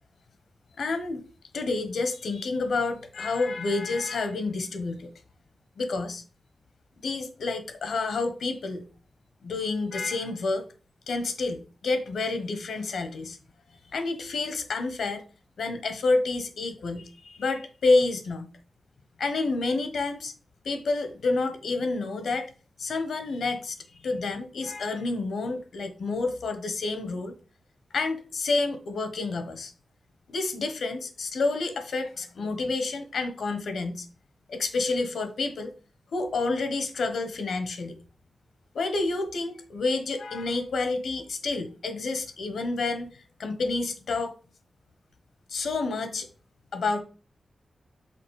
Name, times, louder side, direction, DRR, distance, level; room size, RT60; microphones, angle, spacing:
voice 1, 0.8-1.2 1.5-5.1 5.8-6.2 7.0-8.8 9.4-10.6 11.1-13.4 13.9-15.2 15.6-18.5 19.2-20.3 20.6-22.5 22.8-23.8 24.0-27.3 27.9-29.7 30.3-34.1 34.5-35.7 36.1-37.9 38.7-43.1 43.4-44.3 45.5-46.3 46.7-47.0, left 3 dB, 85° left, 1.2 m, -29 dB
5.8 x 4.1 x 4.8 m
wide cardioid pair, 150°, 0 cm